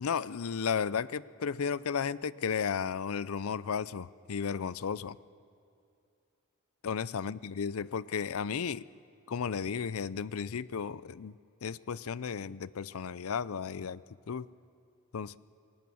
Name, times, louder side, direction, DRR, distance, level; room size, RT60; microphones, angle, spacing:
voice 1, 0.0-5.2 6.8-8.8 9.3-11.3 11.6-14.0 14.3-14.5 15.1-15.4, left 6 dB, 80° left, 19 dB, 0.5 m, -34 dB
26.5 x 19.5 x 7.0 m, 2.5 s
head